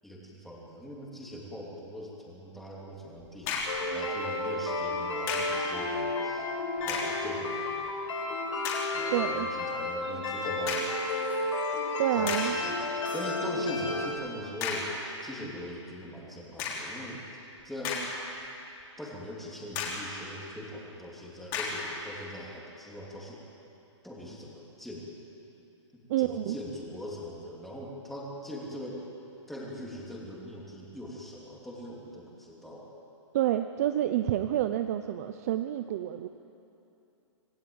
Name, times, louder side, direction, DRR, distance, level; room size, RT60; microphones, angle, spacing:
voice 1, 0.0-6.5 6.8-7.9 8.9-10.9 12.1-14.9 15.2-17.2 17.6-18.0 19.0-23.4 24.0-25.1 25.9-29.0 29.5-32.9, equal, ahead, -4 dB, 3.0 m, -41 dB
sound 1, 3.4-3.9 5.3-5.6 6.8-7.2 7.8-7.9 8.6-9.0 10.7-11.0 11.7-11.8 12.3-12.6 14.6-15.0 16.6-17.0 17.6-18.4 18.8-18.9 19.7-20.1 21.5-21.9, left 5 dB, 25° left, 3.6 m, -34 dB
sound 2, 3.7-14.1, left 2 dB, 90° left, 5.2 m, -32 dB
voice 2, 9.1-9.5 12.0-12.6 26.1-26.6 33.3-36.3, right 12 dB, 30° right, 9 dB, 0.6 m, -28 dB
26.5 x 18.0 x 8.8 m, 2.9 s
hypercardioid pair, 170°, 16 cm